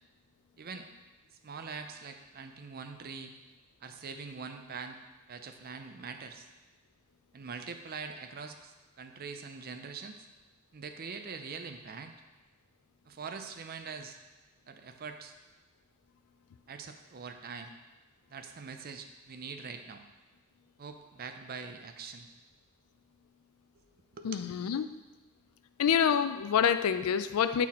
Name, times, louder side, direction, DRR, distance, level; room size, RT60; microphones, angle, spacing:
voice 1, 0.6-0.9 1.4-3.3 3.8-5.0 5.3-6.5 7.3-10.3 10.7-12.2 13.1-14.2 14.7-15.3 16.7-17.7 18.3-20.0 20.8-22.3 23.7-23.8 24.1-24.5, right 5 dB, 45° right, 6 dB, 0.5 m, -43 dB
voice 2, 24.2-24.9 25.8-27.7, left 8 dB, 80° left, 12 dB, 0.4 m, -27 dB
8.3 x 4.0 x 4.2 m, 1.2 s
head